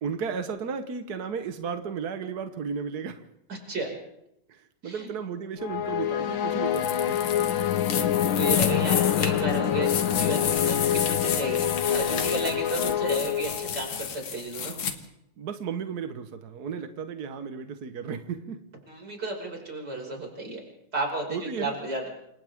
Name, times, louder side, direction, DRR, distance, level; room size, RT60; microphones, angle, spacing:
voice 1, 0.0-3.2 4.5-7.2 15.4-18.6 21.3-21.8, right 6 dB, 60° right, 7 dB, 1.0 m, -34 dB
voice 2, 3.5-4.0 4.8-5.1 7.9-14.8 18.9-20.6 20.9-22.1, right 2 dB, 30° right, 0 dB, 6.3 m, -33 dB
sound 1, 5.6-14.0, left 10 dB, 85° left, 1.0 m, -26 dB
sound 2, 6.7-14.9, left 7 dB, 55° left, 2.4 m, -31 dB
28.5 x 26.5 x 3.7 m, 0.82 s
omnidirectional pair, 3.4 m